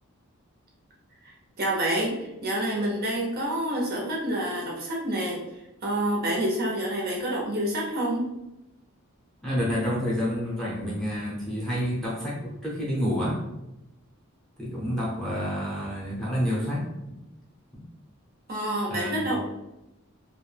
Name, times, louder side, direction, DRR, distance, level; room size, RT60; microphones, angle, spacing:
voice 1, 1.2-5.4 5.8-8.3 18.5-19.5, right 1 dB, 45° right, -3 dB, 0.6 m, -28 dB
voice 2, 9.4-13.4 14.6-17.2 17.7-17.8 18.9-19.3, equal, ahead, -7 dB, 0.7 m, -29 dB
2.5 x 2.1 x 3.2 m, 0.93 s
head